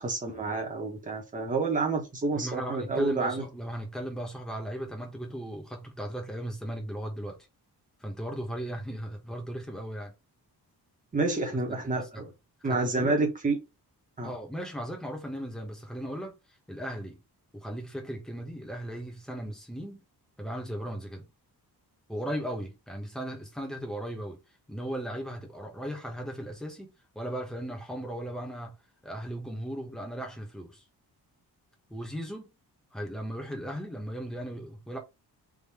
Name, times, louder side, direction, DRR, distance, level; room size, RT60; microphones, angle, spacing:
voice 1, 0.0-3.5 11.1-12.3 12.6-13.6 14.2-14.3, right 3 dB, 20° right, 1.2 m, -29 dB
voice 2, 2.3-7.4 8.0-10.1 11.7-12.2 12.6-13.2 14.2-16.3 16.7-17.2 17.5-20.0 20.4-21.3 22.1-24.4 24.7-28.8 29.0-30.8 31.9-32.5 32.9-35.0, equal, ahead, 1.2 m, -37 dB
3.7 x 2.9 x 4.3 m
wide cardioid pair, 165°, 40 cm